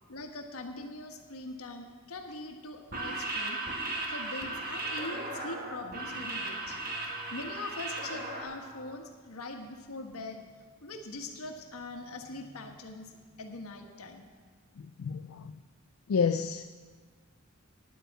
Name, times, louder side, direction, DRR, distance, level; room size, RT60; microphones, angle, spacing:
voice 1, 0.1-3.6 4.1-6.8 7.3-10.4 10.8-14.3, left 2 dB, 85° left, 4 dB, 1.4 m, -42 dB
sound 1, 2.8-8.4, right 2 dB, 45° right, 1.8 m, -36 dB
sound 2, 4.0-9.0, left 1 dB, 5° left, 2.0 m, -53 dB
voice 2, 15.0-15.5 16.1-16.7, left 6 dB, 70° left, 10 dB, 0.4 m, -29 dB
10.0 x 8.9 x 7.9 m, 1.5 s
head